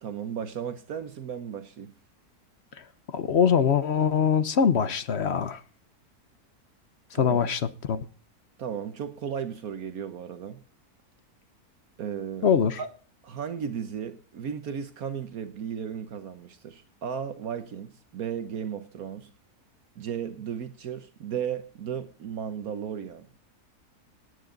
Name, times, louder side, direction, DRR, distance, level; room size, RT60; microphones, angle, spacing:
voice 1, 0.0-1.9 7.1-7.5 8.6-10.6 12.0-12.5 12.8-12.9 13.2-19.3 20.0-23.3, right 8 dB, 70° right, 1.4 m, -35 dB
voice 2, 3.1-5.6 7.1-8.0 12.4-12.8, left 7 dB, 50° left, 0.9 m, -23 dB
18.0 x 9.4 x 3.9 m
omnidirectional pair, 1.6 m